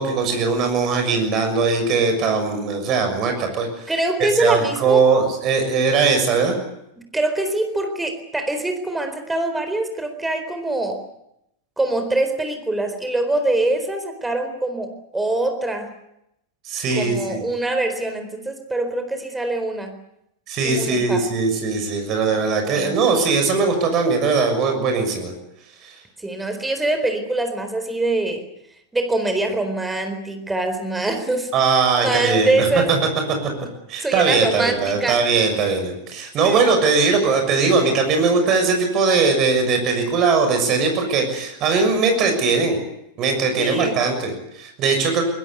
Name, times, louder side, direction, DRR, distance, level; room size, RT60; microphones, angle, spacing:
voice 1, 0.0-3.9 4.2-6.5 16.6-17.4 20.5-25.3 25.8-25.9 31.5-33.0 33.9-42.8 43.2-45.2, right 4 dB, 35° right, 5 dB, 6.6 m, -20 dB
voice 2, 3.9-5.0 7.1-11.0 11.8-15.9 16.9-20.0 20.6-21.2 22.7-23.0 26.2-28.4 28.9-32.9 34.0-35.2 36.4-36.6 43.6-44.0, right 2 dB, 10° right, 7 dB, 4.2 m, -24 dB
23.5 x 21.5 x 8.2 m, 0.82 s
figure-of-eight pair, 90°, 0 cm